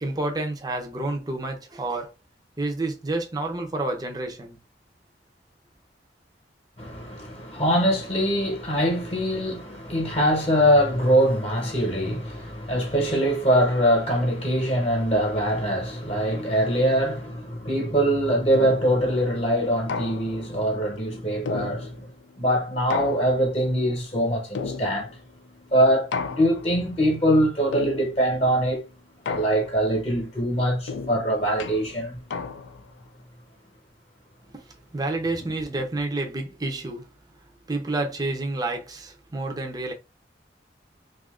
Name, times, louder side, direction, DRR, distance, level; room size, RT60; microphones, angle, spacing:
voice 1, 0.0-2.1 2.6-4.6 34.5-34.6 34.9-37.1 37.7-39.9, right 2 dB, 20° right, 0.5 m, -29 dB
voice 2, 6.8-22.1 22.4-25.1 25.7-28.8 29.3-32.2, equal, 35° left, 0.9 m, -23 dB
sound 1, 18.5-19.1 19.9-20.6 21.5-22.2 22.9-23.7 24.5-25.3 26.1-26.8 27.7-28.4 29.3-30.0 30.9-32.9, left 4 dB, 90° left, 0.4 m, -33 dB
2.7 x 2.4 x 3.6 m
head